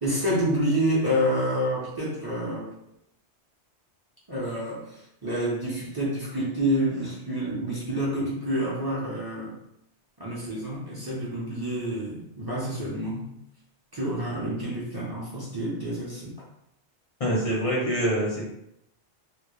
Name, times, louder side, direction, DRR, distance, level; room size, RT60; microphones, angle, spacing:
voice 1, 0.0-2.7 4.3-9.5 10.2-13.3 13.9-16.3, equal, 35° right, -7 dB, 0.4 m, -28 dB
voice 2, 17.2-18.4, equal, 45° left, -5 dB, 0.5 m, -25 dB
2.2 x 2.0 x 3.0 m, 0.80 s
omnidirectional pair, 1.2 m